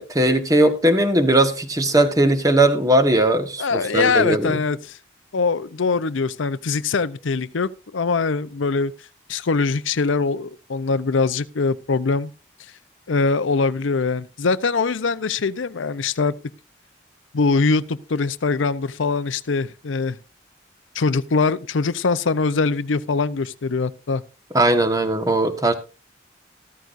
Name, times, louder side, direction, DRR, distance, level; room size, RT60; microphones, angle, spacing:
voice 1, 0.0-4.6 24.5-25.7, right 1 dB, 20° right, 1.2 m, -18 dB
voice 2, 3.6-5.0 5.3-8.9 9.3-12.3 13.1-16.3 17.3-20.2 20.9-24.2, left 4 dB, 85° left, 0.6 m, -22 dB
14.0 x 13.5 x 2.5 m
head